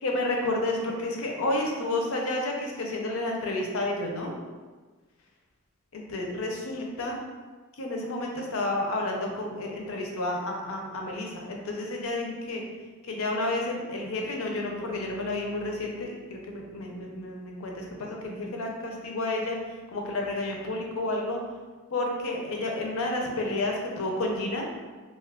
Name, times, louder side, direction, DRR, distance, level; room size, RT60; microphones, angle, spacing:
voice 1, 0.0-4.3 5.9-7.2 7.8-12.6 13.1-19.6 19.9-21.4 21.9-24.6, left 2 dB, 70° left, 0 dB, 0.6 m, -30 dB
2.5 x 2.3 x 3.5 m, 1.3 s
head